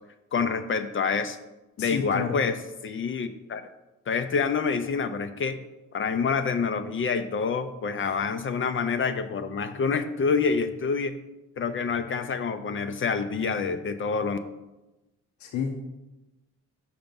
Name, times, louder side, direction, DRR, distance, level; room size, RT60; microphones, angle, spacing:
voice 1, 0.3-1.4 1.8-2.6 2.8-3.6 4.1-5.6 5.9-11.2 11.6-14.4, left 5 dB, 40° left, 9 dB, 0.5 m, -27 dB
voice 2, 1.8-2.4 8.0-8.1 15.4-15.7, left 6 dB, 70° left, 2 dB, 0.9 m, -30 dB
5.9 x 5.0 x 5.3 m, 1.0 s
cardioid pair, 90°, 30 cm